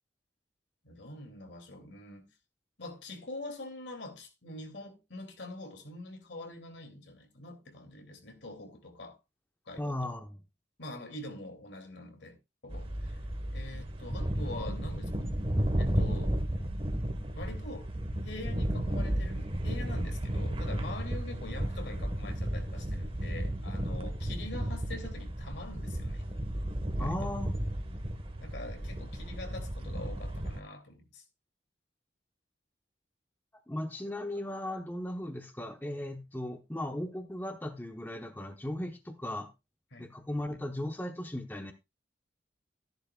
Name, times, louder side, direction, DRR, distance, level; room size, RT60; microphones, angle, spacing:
voice 1, 0.8-2.3 2.8-9.2 9.7-10.2 10.8-12.4 12.6-13.2 13.5-15.1 15.8-16.3 17.3-17.9 18.2-26.2 27.0-27.3 28.4-31.2 39.9-40.1, left 2 dB, 70° left, 2.5 m, -44 dB
voice 2, 9.8-10.4 27.0-27.5 33.7-39.5 40.0-41.7, left 1 dB, 10° left, 0.9 m, -37 dB
sound 1, 12.7-30.6, right 1 dB, 30° right, 1.2 m, -33 dB
14.0 x 10.5 x 2.3 m
head